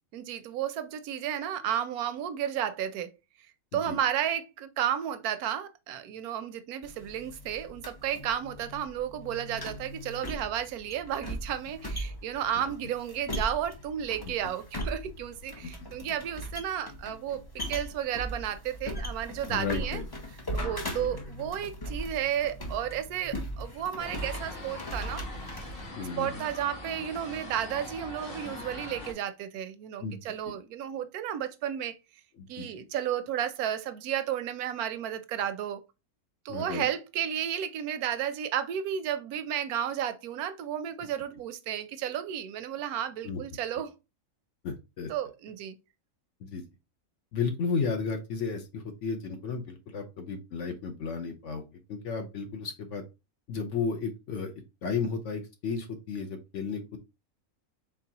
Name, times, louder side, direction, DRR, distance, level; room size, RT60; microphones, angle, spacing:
voice 1, 0.1-3.1 3.7-17.4 17.7-20.0 20.5-25.2 25.5-25.7 26.2-32.0 32.5-35.8 36.4-43.9 45.1-45.7, right 10 dB, 80° right, 1.1 m, -33 dB
sound 1, 6.8-25.9, equal, 25° left, 0.5 m, -39 dB
voice 2, 19.5-20.0 20.8-20.9 25.9-26.4 30.0-30.2 32.4-32.7 36.5-36.9 43.2-43.4 44.6-45.1 46.4-46.6 47.3-53.0 53.5-54.5 54.8-57.0, left 5 dB, 60° left, 1.0 m, -33 dB
sound 2, 24.0-29.1, left 2 dB, 40° left, 1.3 m, -42 dB
4.6 x 3.6 x 2.8 m
omnidirectional pair, 1.6 m